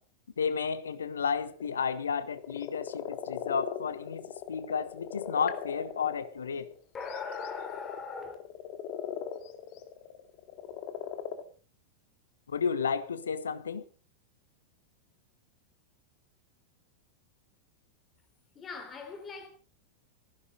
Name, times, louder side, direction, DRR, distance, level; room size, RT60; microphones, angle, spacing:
voice 1, 0.4-6.7 12.5-13.8, left 6 dB, 70° left, 1.5 m, -32 dB
sound 1, 1.6-1.8 2.2-6.8 7.1-11.4, left 10 dB, 45° left, 2.2 m, -39 dB
voice 2, 6.9-8.3 18.5-19.5, left 5 dB, 25° left, 3.5 m, -39 dB
19.5 x 16.0 x 4.0 m
figure-of-eight pair, 90°, 0 cm